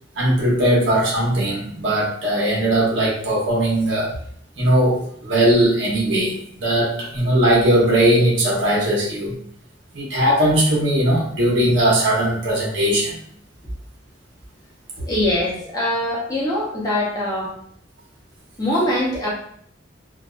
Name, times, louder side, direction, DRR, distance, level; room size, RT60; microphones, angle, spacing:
voice 1, 0.1-4.1 4.6-9.3 9.9-13.2, right 1 dB, 80° right, -4 dB, 1.0 m, -19 dB
voice 2, 15.0-17.5 18.6-19.3, left 1 dB, 20° left, -5 dB, 0.7 m, -22 dB
2.6 x 2.5 x 2.2 m, 0.63 s
head